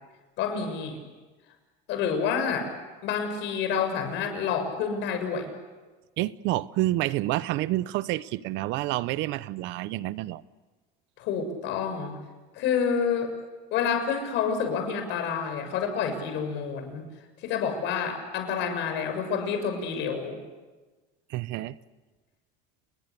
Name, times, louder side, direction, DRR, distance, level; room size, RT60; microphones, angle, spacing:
voice 1, 0.4-1.0 1.9-2.7 3.0-5.5 11.2-12.2 12.5-13.3 13.7-17.1 17.4-20.4, left 6 dB, 65° left, 6.7 m, -28 dB
voice 2, 6.2-10.4 21.3-21.7, right 16 dB, 65° right, 0.9 m, -28 dB
29.5 x 21.0 x 8.4 m
cardioid pair, 120°, 20 cm